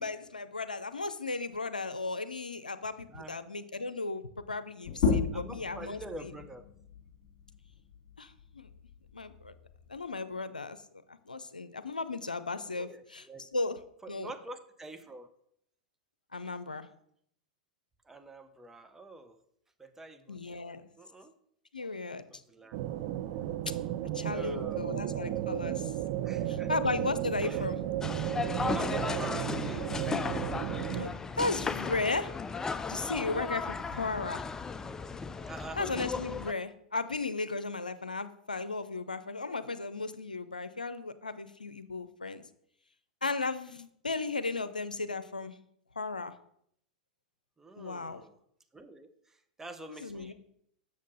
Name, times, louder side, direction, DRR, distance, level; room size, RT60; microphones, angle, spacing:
voice 1, 0.0-6.3 8.2-8.7 9.1-9.5 9.9-10.8 11.1-13.8 14.1-14.3 16.3-16.9 20.3-20.9 21.7-22.4 24.1-25.9 26.5-27.8 30.9-31.1 31.3-32.3 32.9-34.4 35.8-42.4 43.2-45.6 46.0-46.3 47.8-48.2 49.9-50.3, left 3 dB, 90° left, 12 dB, 0.6 m, -35 dB
voice 2, 3.1-3.4 5.3-6.6 12.7-13.5 14.0-15.3 18.1-19.4 19.8-20.6 21.0-21.3 22.3-22.8 24.3-25.1 26.2-26.7 27.4-27.7 28.7-30.2 35.5-35.8 47.6-48.3 48.7-50.3, right 2 dB, 10° right, 8 dB, 0.8 m, -46 dB
sound 1, 4.8-10.1, left 5 dB, 50° left, 2.3 m, -35 dB
sound 2, 22.7-31.0, right 12 dB, 50° right, 0.6 m, -34 dB
sound 3, 28.0-36.5, left 4 dB, 15° left, 0.3 m, -35 dB
7.3 x 6.6 x 4.0 m, 0.70 s
figure-of-eight pair, 95°, 4 cm